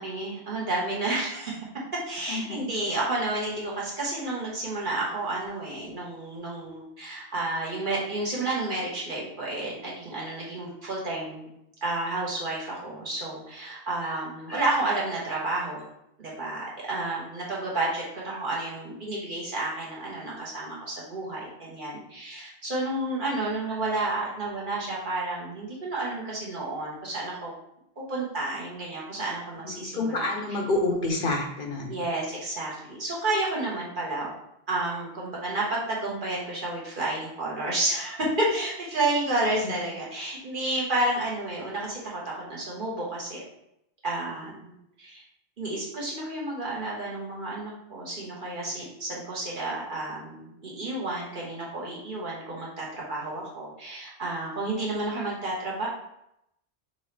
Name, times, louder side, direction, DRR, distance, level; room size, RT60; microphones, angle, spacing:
voice 1, 0.0-1.6 2.1-11.5 11.8-15.8 16.2-27.5 28.1-30.6 31.9-34.3 34.7-43.4 44.0-45.2 45.6-55.9, right 2 dB, 50° right, -5 dB, 1.4 m, -31 dB
voice 2, 2.3-2.6 29.6-32.0 39.6-39.7, left 2 dB, 55° left, 1 dB, 0.8 m, -28 dB
5.4 x 2.9 x 3.3 m, 0.79 s
omnidirectional pair, 1.1 m